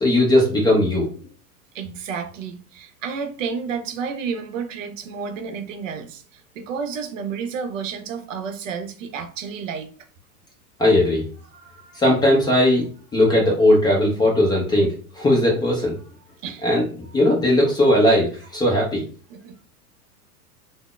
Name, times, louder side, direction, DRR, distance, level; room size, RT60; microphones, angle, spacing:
voice 1, 0.0-1.1 10.8-11.3 11.9-16.0 16.6-16.8 17.1-19.0, left 1 dB, 10° left, 0.4 m, -18 dB
voice 2, 1.7-9.9 16.4-16.7 19.3-19.6, right 6 dB, 55° right, 0.6 m, -31 dB
3.4 x 2.0 x 2.3 m
figure-of-eight pair, 90°, 46 cm